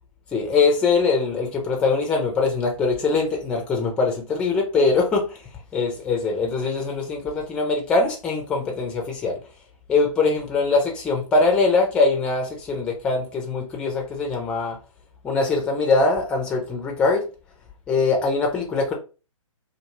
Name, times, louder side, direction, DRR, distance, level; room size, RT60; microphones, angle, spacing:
voice 1, 0.3-5.4 5.7-9.4 9.9-14.8 15.2-17.3 17.9-18.9, left 3 dB, 5° left, 0.3 m, -22 dB
2.4 x 2.3 x 2.9 m
figure-of-eight pair, 130°, 18 cm